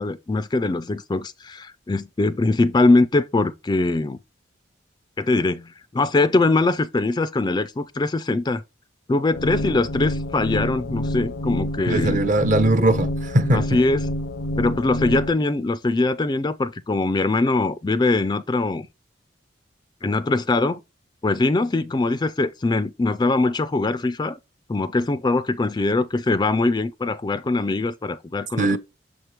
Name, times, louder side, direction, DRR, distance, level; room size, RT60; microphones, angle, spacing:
voice 1, 0.0-4.2 5.2-8.6 9.1-12.2 13.5-14.0 14.6-18.9 20.0-20.8 21.2-24.4 24.7-28.8, left 2 dB, 20° left, 0.3 m, -22 dB
sound 1, 9.3-15.3, left 1 dB, 85° left, 0.7 m, -28 dB
voice 2, 11.9-13.7 28.6-28.8, right 1 dB, 40° right, 0.7 m, -20 dB
6.6 x 4.5 x 3.2 m
head